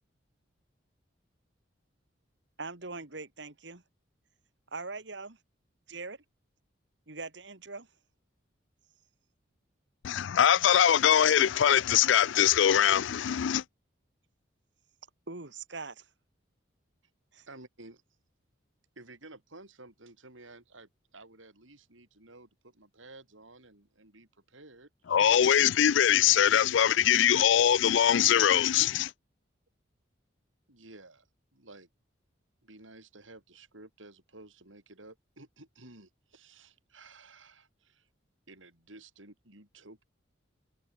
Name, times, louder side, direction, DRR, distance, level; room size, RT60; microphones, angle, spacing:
voice 1, 2.6-3.8 4.7-5.4 5.9-6.2 7.1-7.9 15.3-16.1 17.3-17.5, right 3 dB, 65° right, 2.2 m, -41 dB
voice 2, 10.0-13.6 25.1-29.1, left 9 dB, 75° left, 0.4 m, -22 dB
voice 3, 17.5-18.0 18.9-25.6 30.7-31.3 31.5-31.9 32.6-38.1 38.5-40.0, right 2 dB, 90° right, 6.8 m, -53 dB
head